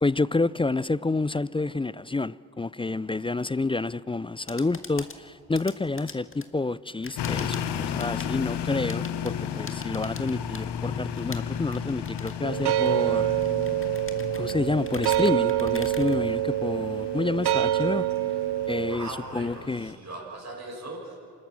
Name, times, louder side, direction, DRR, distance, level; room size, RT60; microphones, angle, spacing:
voice 1, 0.0-13.3 14.4-18.1 18.7-20.0, left 3 dB, 15° left, 0.4 m, -29 dB
sound 1, 4.2-16.8, left 3 dB, 30° left, 1.8 m, -45 dB
sound 2, 7.2-19.9, left 8 dB, 75° left, 1.1 m, -34 dB
sound 3, 12.4-19.0, right 14 dB, 70° right, 0.8 m, -26 dB
voice 2, 18.9-21.2, right 2 dB, 40° right, 5.9 m, -39 dB
27.0 x 13.0 x 7.5 m
supercardioid pair, 45°, 41 cm